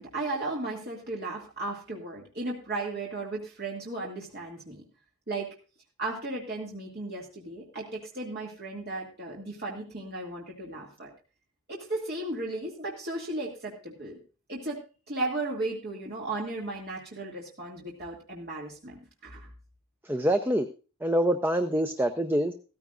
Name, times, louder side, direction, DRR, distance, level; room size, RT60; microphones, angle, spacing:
voice 1, 0.0-4.8 5.3-5.5 6.0-11.1 11.7-14.2 14.5-14.8 15.1-19.5, right 2 dB, 45° right, -3 dB, 2.4 m, -35 dB
voice 2, 20.0-20.7 21.0-22.5, right 1 dB, 10° right, 7 dB, 0.6 m, -25 dB
15.5 x 14.0 x 2.5 m, 0.35 s
head